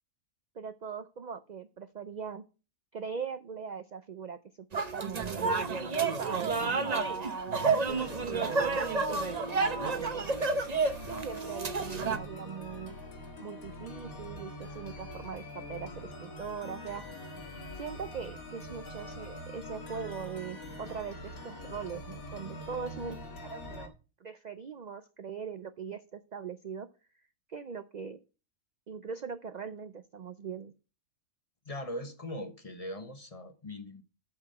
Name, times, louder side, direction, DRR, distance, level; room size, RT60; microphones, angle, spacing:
voice 1, 0.5-2.5 2.9-4.4 4.7-5.5 6.0-8.8 9.1-10.4 11.1-13.0 13.4-17.1 17.8-23.2 23.5-23.9 24.2-26.9 27.5-28.2 28.9-30.7, right 6 dB, 65° right, 0.4 m, -40 dB
sound 1, 4.7-12.2, right 4 dB, 35° right, 0.8 m, -30 dB
sound 2, 7.9-23.9, left 1 dB, 80° left, 2.2 m, -44 dB
voice 2, 31.6-34.0, left 1 dB, 30° left, 1.0 m, -40 dB
8.7 x 6.0 x 6.5 m
omnidirectional pair, 1.5 m